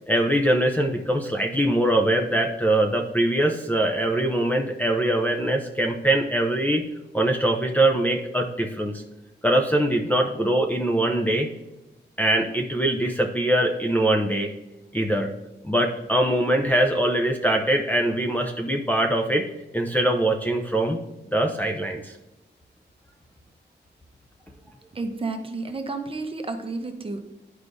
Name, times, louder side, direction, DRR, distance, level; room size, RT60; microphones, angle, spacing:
voice 1, 0.1-6.8 7.1-8.9 9.4-11.5 12.2-14.5 14.9-15.3 15.6-19.4 19.7-21.0 21.3-22.1, right 1 dB, 10° left, 0 dB, 0.5 m, -22 dB
voice 2, 24.9-27.2, right 3 dB, 30° right, 5 dB, 0.7 m, -31 dB
11.0 x 4.8 x 2.6 m, 0.98 s
wide cardioid pair, 165°, 19 cm